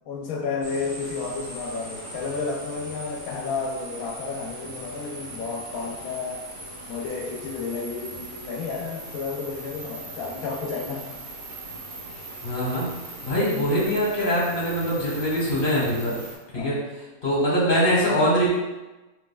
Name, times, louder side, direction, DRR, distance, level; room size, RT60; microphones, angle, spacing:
voice 1, 0.1-6.5 6.9-11.1 16.5-16.7, left 4 dB, 80° left, 0 dB, 1.0 m, -31 dB
sound 1, 0.6-16.3, right 2 dB, 65° right, 1.3 m, -40 dB
voice 2, 12.4-12.9 13.2-16.1 16.5-16.8 17.2-18.5, equal, 40° left, -5 dB, 1.4 m, -23 dB
6.0 x 3.1 x 2.3 m, 1.1 s
omnidirectional pair, 1.5 m